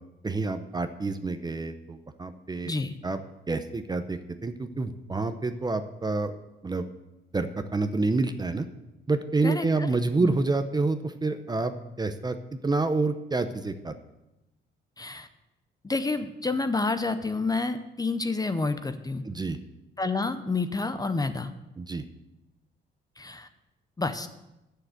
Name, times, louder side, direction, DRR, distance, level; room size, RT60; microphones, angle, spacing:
voice 1, 0.2-2.7 3.0-3.2 3.5-6.3 6.6-6.9 7.3-8.7 9.1-13.9 19.2-19.6 21.8-22.1, right 3 dB, 20° right, 9 dB, 0.7 m, -28 dB
voice 2, 2.7-3.0 9.4-9.7 10.2-10.4 15.0-15.3 15.8-19.2 20.0-21.5 23.2-23.5 24.0-24.3, left 3 dB, 20° left, 10 dB, 0.6 m, -29 dB
7.3 x 6.6 x 7.9 m, 0.94 s
cardioid pair, 90°, 20 cm